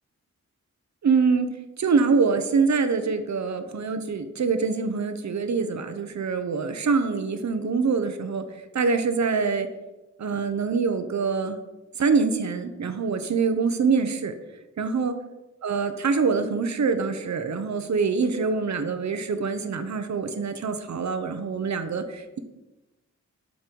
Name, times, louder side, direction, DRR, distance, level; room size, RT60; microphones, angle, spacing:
voice 1, 1.0-1.5 1.8-8.4 8.7-9.7 10.2-11.6 12.0-14.3 14.8-15.1 15.6-22.4, right 5 dB, 70° right, 8 dB, 1.0 m, -24 dB
13.0 x 5.4 x 4.6 m, 1.0 s
wide cardioid pair, 165°, 29 cm